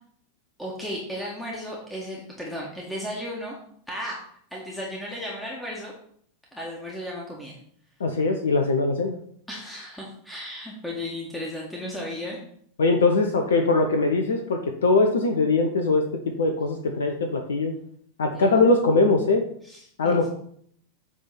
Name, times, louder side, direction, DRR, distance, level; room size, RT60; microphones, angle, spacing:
voice 1, 0.6-3.5 3.9-4.2 4.5-5.9 6.5-7.6 9.5-12.4 18.3-18.5 19.6-20.3, left 1 dB, 5° left, -3 dB, 1.7 m, -35 dB
voice 2, 8.0-9.1 12.8-17.7 18.2-19.4 20.0-20.3, left 3 dB, 65° left, 5 dB, 0.8 m, -21 dB
8.2 x 3.6 x 5.8 m, 0.64 s
figure-of-eight pair, 90°, 0 cm